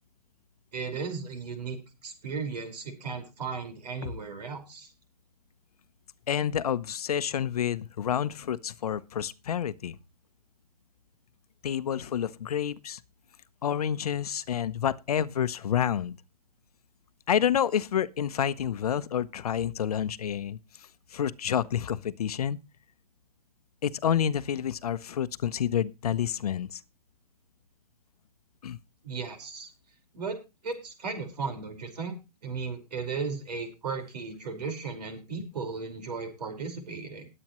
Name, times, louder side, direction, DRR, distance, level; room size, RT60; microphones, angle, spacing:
voice 1, 0.7-1.8 2.0-4.9 29.0-29.7 30.1-30.4 30.6-32.1 32.4-37.3, right 5 dB, 75° right, 4.8 m, -35 dB
voice 2, 6.3-10.0 11.6-13.0 13.6-16.1 17.3-22.6 23.8-26.8 28.6-28.8, left 9 dB, 65° left, 0.8 m, -29 dB
19.5 x 8.7 x 3.1 m
hypercardioid pair, 175°, 21 cm